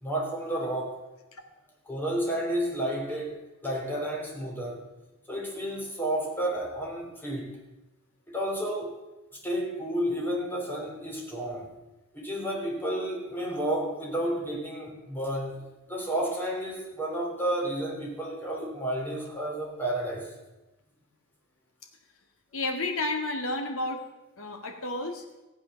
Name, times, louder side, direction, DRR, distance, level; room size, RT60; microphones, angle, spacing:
voice 1, 0.0-1.0 1.9-4.8 5.3-7.6 8.3-9.0 9.4-11.7 12.1-15.6 15.9-20.3, right 1 dB, 10° left, -1 dB, 3.1 m, -31 dB
voice 2, 22.5-24.0 24.4-25.2, left 2 dB, 65° left, 4 dB, 2.0 m, -31 dB
15.0 x 8.5 x 6.5 m, 1.0 s
head